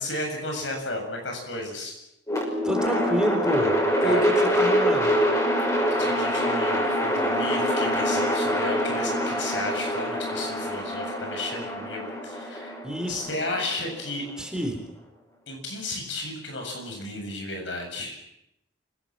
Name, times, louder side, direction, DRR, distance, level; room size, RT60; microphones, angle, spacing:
voice 1, 0.0-2.0 4.0-4.3 6.0-12.8 13.1-14.3 15.5-18.2, left 2 dB, 80° left, 3 dB, 7.8 m, -33 dB
sound 1, 2.3-14.4, equal, 15° left, 6.0 m, -25 dB
voice 2, 2.6-3.8 4.0-5.1 12.8-13.2 14.4-14.8, right 1 dB, 5° right, 3 dB, 3.8 m, -27 dB
26.5 x 17.5 x 7.6 m, 0.82 s
head